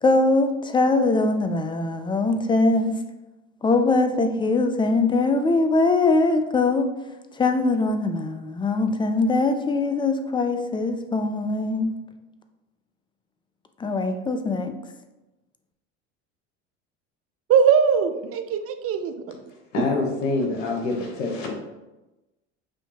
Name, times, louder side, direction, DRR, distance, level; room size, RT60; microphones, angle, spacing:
voice 1, 0.0-3.0 3.6-6.9 7.4-11.9 13.8-14.7, left 3 dB, 15° left, 7 dB, 0.4 m, -22 dB
voice 2, 17.5-19.1, right 7 dB, 40° right, 8 dB, 0.5 m, -20 dB
voice 3, 19.7-21.5, left 3 dB, 80° left, 1 dB, 1.1 m, -26 dB
6.3 x 2.7 x 2.8 m, 1.0 s
hypercardioid pair, 80°, 37 cm